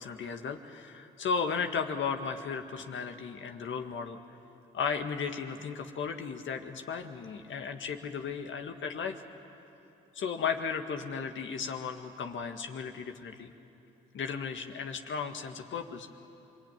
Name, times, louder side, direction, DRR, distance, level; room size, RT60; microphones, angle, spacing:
voice 1, 0.0-4.2 4.7-9.2 10.1-13.5 14.1-16.1, left 6 dB, 70° left, 5 dB, 1.9 m, -35 dB
26.5 x 23.5 x 9.2 m, 2.9 s
supercardioid pair, 50°, 21 cm